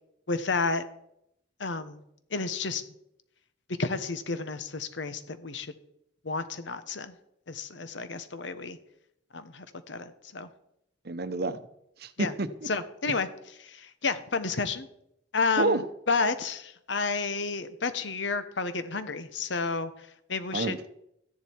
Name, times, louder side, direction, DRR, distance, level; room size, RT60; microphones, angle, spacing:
voice 1, 0.3-0.8 1.6-2.0 2.3-2.8 3.8-5.7 6.2-7.1 7.5-8.8 9.3-10.5 12.2-12.3 12.7-13.3 13.6-14.9 15.3-20.7, left 4 dB, 75° left, 11 dB, 1.1 m, -31 dB
voice 2, 11.0-11.6 12.0-12.7 15.6-15.8 20.5-20.9, right 2 dB, 60° right, 12 dB, 0.8 m, -29 dB
14.0 x 10.5 x 4.6 m, 0.77 s
head